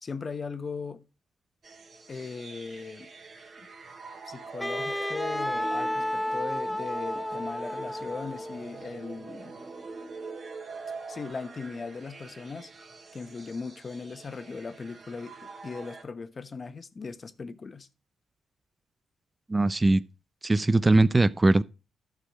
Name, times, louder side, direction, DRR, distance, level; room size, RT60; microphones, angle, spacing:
voice 1, 0.0-1.0 2.1-3.1 4.2-9.5 11.1-12.7 13.1-17.9, left 4 dB, 40° left, 1.1 m, -38 dB
sound 1, 1.6-16.0, right 4 dB, 50° right, 2.5 m, -44 dB
Wind instrument woodwind instrument, 4.6-8.7, left 1 dB, 10° left, 0.8 m, -32 dB
voice 2, 19.5-20.0 20.4-21.6, right 2 dB, 25° right, 0.6 m, -21 dB
11.5 x 6.3 x 6.3 m
supercardioid pair, 55°, 0 cm